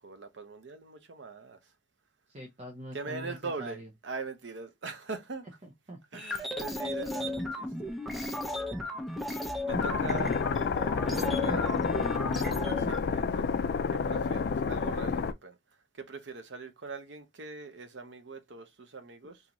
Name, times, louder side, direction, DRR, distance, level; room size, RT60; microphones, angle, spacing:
voice 1, 0.0-1.6 2.9-5.5 6.1-7.9 9.6-10.4 11.0-11.7 12.7-13.6 13.9-15.6 16.0-19.4, right 4 dB, 80° right, 0.8 m, -41 dB
voice 2, 2.3-3.9 5.6-6.2, right 1 dB, 35° right, 0.7 m, -44 dB
sound 1, 6.2-13.0, left 1 dB, ahead, 0.5 m, -35 dB
sound 2, 9.7-15.3, left 5 dB, 60° left, 0.3 m, -29 dB
3.8 x 2.7 x 2.9 m
head